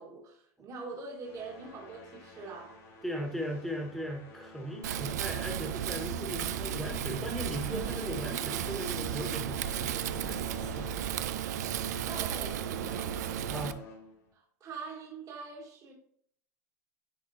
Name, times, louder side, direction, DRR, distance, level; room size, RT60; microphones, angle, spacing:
voice 1, 0.0-2.8 12.0-13.4 14.3-15.9, right 4 dB, 40° right, -1 dB, 2.0 m, -43 dB
sound 1, 1.2-6.1 6.4-6.7 7.3-14.3, left 2 dB, 70° left, 2.6 m, -51 dB
voice 2, 3.0-11.1 13.5-13.8, equal, ahead, 2 dB, 1.7 m, -38 dB
Wind, 4.8-13.7, right 10 dB, 90° right, 0.4 m, -34 dB
sound 2, 6.0-11.2, left 3 dB, 30° left, 0.7 m, -46 dB
9.9 x 4.2 x 2.9 m, 0.63 s
supercardioid pair, 105°, 9 cm